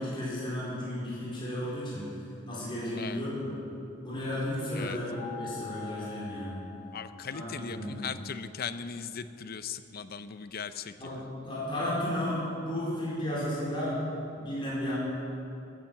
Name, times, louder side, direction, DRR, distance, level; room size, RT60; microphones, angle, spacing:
voice 1, 0.0-2.1 2.5-3.6 4.0-6.6 7.3-8.0 11.0-14.0 14.4-14.9, left 1 dB, 25° left, -8 dB, 4.3 m, -33 dB
sound 1, 5.1-8.1, left 9 dB, 75° right, 3.9 m, -45 dB
voice 2, 6.9-11.2, left 6 dB, 55° left, 12 dB, 0.6 m, -39 dB
14.5 x 10.0 x 7.7 m, 2.7 s
head